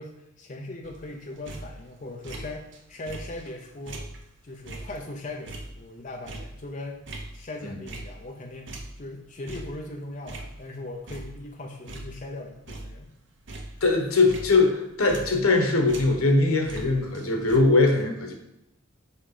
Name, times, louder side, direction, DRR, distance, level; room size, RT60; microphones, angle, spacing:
voice 1, 0.0-4.0 4.4-7.0 7.3-13.1, left 2 dB, 35° left, 1 dB, 0.6 m, -39 dB
sound 1, 0.8-2.8 3.1-8.4 8.7-10.8 11.1-11.6 11.9-15.6 15.9-17.6, right 2 dB, 55° right, 0.8 m, -41 dB
voice 2, 13.8-18.3, left 3 dB, 85° left, 3 dB, 1.3 m, -21 dB
5.6 x 5.0 x 4.9 m, 0.83 s
head